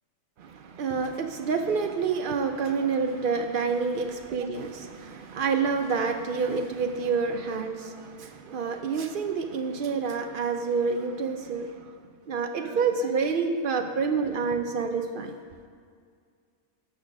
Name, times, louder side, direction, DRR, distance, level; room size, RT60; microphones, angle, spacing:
voice 1, 0.4-11.9 12.3-15.3, right 5 dB, 70° right, 5 dB, 0.5 m, -28 dB
6.5 x 6.1 x 6.2 m, 2.2 s
omnidirectional pair, 1.4 m